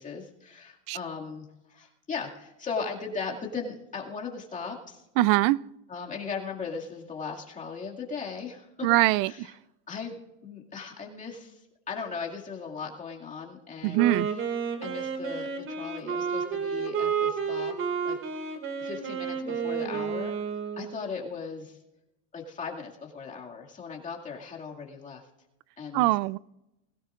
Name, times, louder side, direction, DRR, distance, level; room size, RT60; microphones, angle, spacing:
voice 1, 0.0-5.0 5.9-8.9 9.2-9.6 9.9-11.6 11.9-14.4 14.8-17.8 18.0-18.5 18.8-20.4 20.8-21.8 22.3-25.2 25.8-26.1, left 5 dB, 20° left, 2.2 m, -38 dB
voice 2, 5.2-5.6 8.8-9.5 13.8-14.3 25.9-26.4, right 17 dB, 55° right, 0.5 m, -22 dB
Wind instrument woodwind instrument, 13.8-21.0, right 6 dB, 35° right, 2.3 m, -31 dB
21.0 x 17.0 x 2.5 m
supercardioid pair, 135°, 36 cm